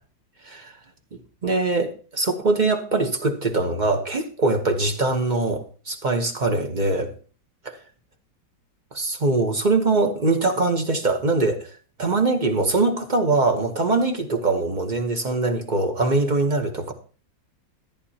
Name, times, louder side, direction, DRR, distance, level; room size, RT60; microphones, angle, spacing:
voice 1, 1.4-7.1 8.9-11.7 12.0-16.9, right 3 dB, 30° right, 5 dB, 0.9 m, -22 dB
14.0 x 10.5 x 2.8 m, 0.39 s
omnidirectional pair, 2.0 m